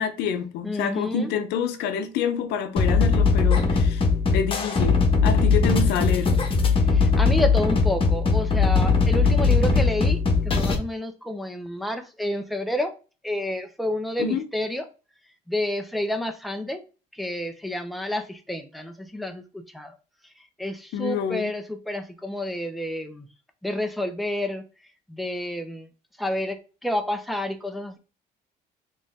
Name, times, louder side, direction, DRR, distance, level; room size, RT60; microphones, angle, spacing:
voice 1, 0.0-4.0 4.3-6.3 14.2-14.4 20.9-21.5, left 7 dB, 85° left, 0.7 m, -27 dB
voice 2, 0.6-1.3 6.8-10.2 10.4-12.9 13.2-14.9 15.5-16.8 17.1-19.9 20.6-23.3 23.6-24.6 25.1-25.9 26.2-28.0, left 1 dB, ahead, 0.6 m, -29 dB
sound 1, 2.8-10.8, left 4 dB, 30° left, 1.1 m, -20 dB
3.9 x 3.2 x 3.4 m
cardioid pair, 110°, 17 cm